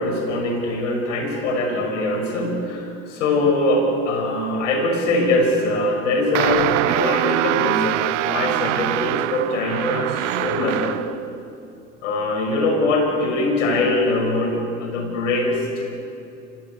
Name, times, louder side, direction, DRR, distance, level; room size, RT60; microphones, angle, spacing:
voice 1, 0.0-11.2 12.0-15.8, left 2 dB, 85° left, 2 dB, 5.7 m, -22 dB
sound 1, 6.3-11.2, right 16 dB, 85° right, 0.7 m, -23 dB
28.5 x 16.0 x 8.4 m, 2.8 s
hypercardioid pair, 75°, 36 cm